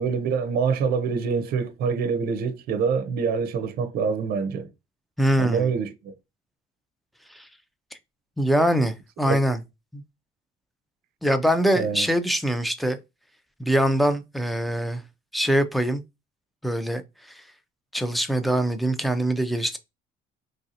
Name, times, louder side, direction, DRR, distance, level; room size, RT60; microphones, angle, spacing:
voice 1, 0.0-4.7 5.4-6.1 9.3-9.4 11.7-12.1, right 6 dB, 65° right, 0.6 m, -25 dB
voice 2, 5.2-5.7 7.3-7.5 8.4-9.6 9.9-10.0 11.2-13.0 13.6-15.0 15.3-16.0 16.6-17.0 17.9-19.8, equal, ahead, 0.4 m, -23 dB
3.1 x 2.7 x 2.6 m
cardioid pair, 110°, 17 cm